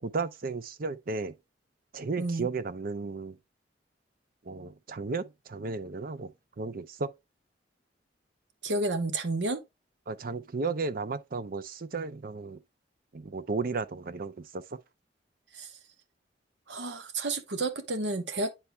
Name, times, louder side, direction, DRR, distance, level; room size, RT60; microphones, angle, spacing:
voice 1, 0.0-1.4 1.9-3.4 4.4-6.3 6.6-7.1 10.1-12.6 13.1-14.8, right 4 dB, 55° right, 0.6 m, -34 dB
voice 2, 2.2-2.5 8.6-9.6 15.5-15.7 16.7-18.5, right 2 dB, 80° right, 1.0 m, -31 dB
9.9 x 4.3 x 2.2 m
head